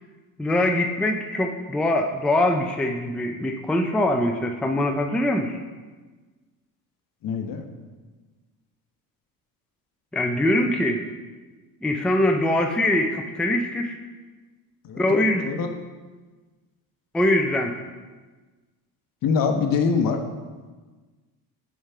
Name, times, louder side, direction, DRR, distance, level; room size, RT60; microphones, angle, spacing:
voice 1, 0.4-5.6 10.1-11.0 11.8-14.0 15.0-15.5 17.1-17.8, left 1 dB, ahead, 3 dB, 0.4 m, -23 dB
voice 2, 7.2-7.7 14.8-15.0 15.4-15.7 19.2-20.2, left 5 dB, 55° left, 6 dB, 1.0 m, -23 dB
7.4 x 4.8 x 5.5 m, 1.3 s
cardioid pair, 105°, 40 cm